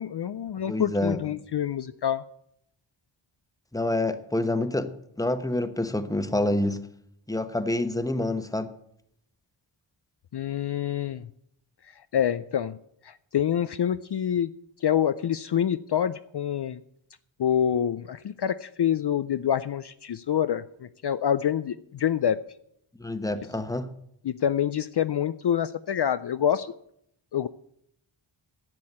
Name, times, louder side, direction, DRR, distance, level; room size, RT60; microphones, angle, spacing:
voice 1, 0.0-2.2 10.3-11.3 12.1-12.8 13.0-14.5 14.8-16.8 17.4-22.4 24.2-26.7 27.3-27.5, left 9 dB, 55° left, 0.5 m, -26 dB
voice 2, 0.7-1.2 3.7-4.9 5.2-6.8 7.3-8.7 23.0-23.9, left 1 dB, 5° left, 1.1 m, -27 dB
11.0 x 7.6 x 8.6 m
wide cardioid pair, 55°, 49 cm